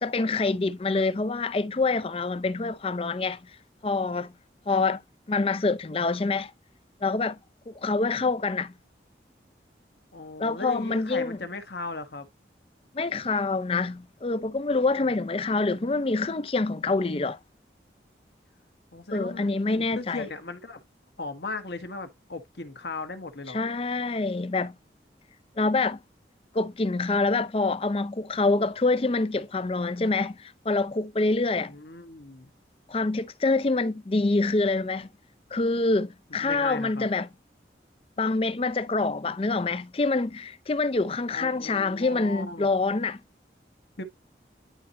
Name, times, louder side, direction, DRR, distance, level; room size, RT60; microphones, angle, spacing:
voice 1, 0.0-3.4 3.8-4.3 4.7-5.0 5.3-6.5 7.0-7.4 7.7-8.7 10.4-11.4 12.9-17.4 19.1-20.3 23.5-24.7 25.6-26.0 26.5-31.7 32.9-35.1 35.5-37.3 38.2-43.2, left 3 dB, 30° left, 0.5 m, -26 dB
voice 2, 10.1-12.3 18.9-20.8 21.2-23.6 31.6-32.5 36.3-37.1 41.3-42.7 44.0-44.1, left 3 dB, 75° left, 1.4 m, -37 dB
10.5 x 4.2 x 2.6 m
head